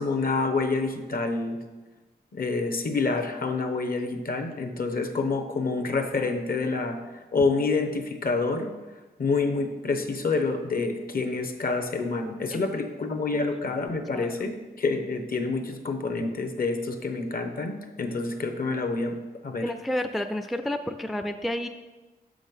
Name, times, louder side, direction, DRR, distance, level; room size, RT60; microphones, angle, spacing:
voice 1, 0.0-1.6 2.3-8.7 9.2-19.2 19.4-19.7, left 3 dB, 55° left, 7 dB, 0.9 m, -28 dB
voice 2, 19.6-21.7, left 1 dB, ahead, 8 dB, 0.4 m, -30 dB
6.3 x 5.7 x 5.3 m, 1.2 s
wide cardioid pair, 90°, 17 cm